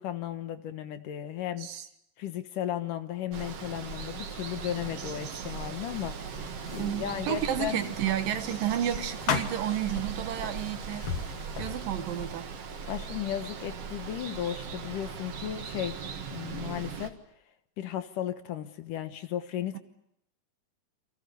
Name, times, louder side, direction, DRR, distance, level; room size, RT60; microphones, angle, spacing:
voice 1, 0.0-1.7 2.2-6.2 6.7-7.8 12.9-16.0 16.3-17.2 17.8-19.8, left 11 dB, 70° left, 9 dB, 2.7 m, -35 dB
Water, 3.3-17.1, right 6 dB, 50° right, 2.4 m, -39 dB
sound 1, 6.3-12.4, left 7 dB, 50° left, 2.1 m, -38 dB
voice 2, 6.8-11.1 11.6-12.5 19.7-19.8, right 10 dB, 75° right, 8 dB, 3.2 m, -31 dB
29.5 x 24.5 x 6.9 m, 0.78 s
omnidirectional pair, 4.1 m